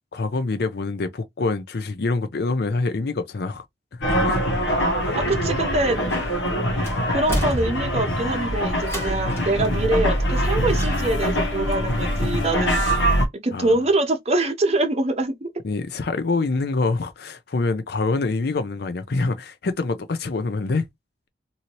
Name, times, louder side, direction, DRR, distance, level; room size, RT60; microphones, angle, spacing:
voice 1, 0.1-3.6 3.9-4.4 13.5-13.8 15.6-20.9, left 3 dB, 60° left, 0.5 m, -25 dB
sound 1, 4.0-13.3, equal, 75° left, 1.1 m, -23 dB
voice 2, 5.1-6.0 7.1-12.8 13.4-15.5, right 2 dB, 35° right, 0.8 m, -24 dB
sound 2, 6.1-6.5 6.8-8.2 8.8-9.6 10.7-11.3 11.7-11.8, equal, 15° left, 1.5 m, -31 dB
2.7 x 2.7 x 2.9 m
head